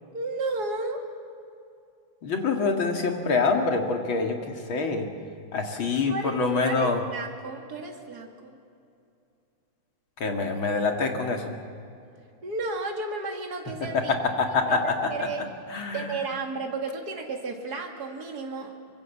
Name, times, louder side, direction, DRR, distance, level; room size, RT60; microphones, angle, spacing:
voice 1, 0.1-1.0 6.1-6.3 6.6-8.6 12.4-14.1 14.7-15.5 15.9-18.7, right 3 dB, 50° right, 2 dB, 2.8 m, -33 dB
voice 2, 2.2-5.1 5.5-7.0 10.2-11.5 14.4-14.8 15.7-16.1, left 4 dB, 80° left, 3 dB, 3.1 m, -25 dB
25.0 x 24.0 x 7.3 m, 2.5 s
omnidirectional pair, 2.2 m